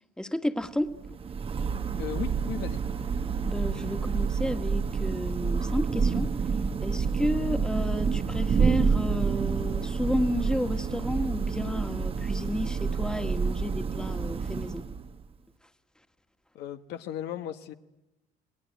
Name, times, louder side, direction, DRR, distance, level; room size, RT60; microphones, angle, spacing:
voice 1, 0.2-0.9 3.4-14.9, left 1 dB, 5° left, 7 dB, 1.7 m, -32 dB
Thunder / Rain, 0.9-15.3, right 5 dB, 35° right, 1.1 m, -28 dB
voice 2, 1.9-3.0 16.5-17.7, left 11 dB, 75° left, 7 dB, 1.3 m, -36 dB
29.5 x 20.0 x 9.3 m, 0.99 s
cardioid pair, 110°, 17 cm